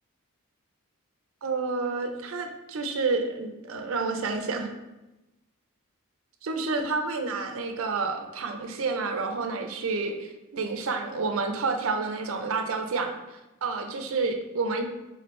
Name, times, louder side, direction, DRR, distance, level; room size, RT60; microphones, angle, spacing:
voice 1, 1.4-4.7 6.4-13.1 13.6-14.8, right 4 dB, 70° right, 5 dB, 0.5 m, -29 dB
4.2 x 3.9 x 3.1 m, 1.0 s
head